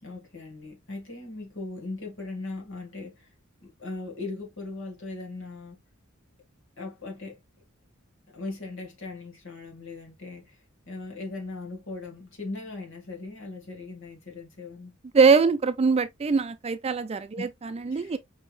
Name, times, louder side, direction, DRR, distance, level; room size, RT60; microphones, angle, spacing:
voice 1, 0.0-3.3 3.6-5.8 6.8-7.4 8.3-10.6 10.9-15.0 17.4-17.5 17.9-18.2, left 3 dB, 65° left, 2.1 m, -39 dB
voice 2, 15.1-18.2, right 5 dB, 30° right, 0.4 m, -22 dB
5.2 x 3.4 x 2.4 m
head